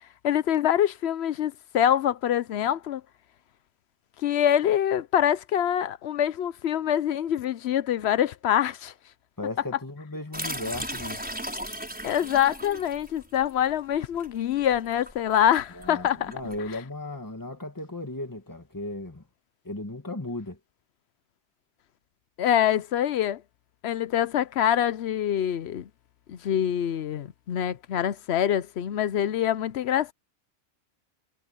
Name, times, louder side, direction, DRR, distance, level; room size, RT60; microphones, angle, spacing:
voice 1, 0.2-3.0 4.2-8.9 12.0-16.3 22.4-23.4 23.8-25.9 26.3-30.1, left 10 dB, 70° left, 0.9 m, -25 dB
voice 2, 9.4-11.2 15.7-19.2 19.6-20.6, left 2 dB, 15° left, 1.9 m, -36 dB
sound 1, 10.3-16.7, equal, 5° right, 6.2 m, -37 dB
omnidirectional pair, 1.2 m